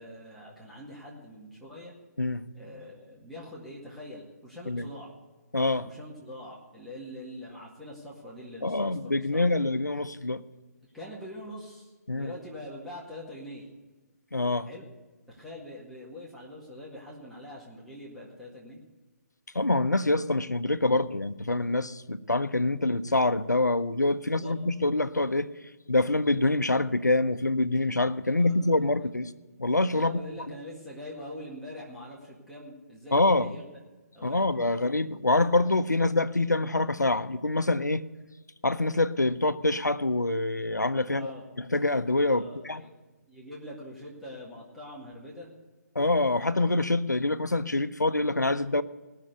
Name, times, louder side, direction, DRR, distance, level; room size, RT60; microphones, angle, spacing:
voice 1, 0.0-1.9 2.5-5.1 5.8-9.6 10.9-13.7 14.7-14.9 15.3-18.8 24.4-24.6 28.4-28.9 29.9-33.8 34.1-34.8 41.1-41.4 42.3-42.9 43.3-45.5, left 1 dB, ahead, 1.9 m, -44 dB
voice 2, 5.5-5.9 8.6-10.4 12.1-12.3 14.3-14.7 19.5-25.5 25.9-29.3 29.6-30.2 33.1-33.5 34.2-38.0 38.6-41.3 41.6-42.8 45.9-48.8, left 2 dB, 90° left, 0.7 m, -25 dB
18.5 x 6.6 x 7.9 m
figure-of-eight pair, 140°, 9 cm